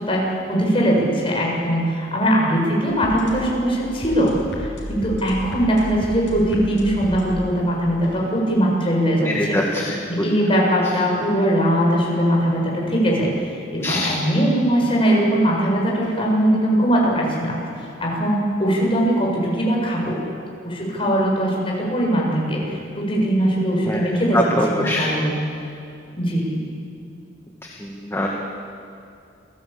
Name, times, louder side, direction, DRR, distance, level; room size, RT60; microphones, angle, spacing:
voice 1, 0.1-9.6 10.1-13.3 13.7-17.6 18.0-20.2 20.6-24.4 24.7-25.3 26.1-26.6, equal, 30° left, -2 dB, 7.0 m, -20 dB
sound 1, 2.9-8.9 9.8-13.0 13.8-16.9 17.8-17.9, equal, 70° left, 6.0 m, -37 dB
voice 2, 9.2-10.1 13.8-14.1 23.9-24.0 24.3-25.2 27.6-28.3, left 1 dB, 15° left, -1 dB, 2.0 m, -23 dB
28.0 x 18.5 x 8.8 m, 2.6 s
head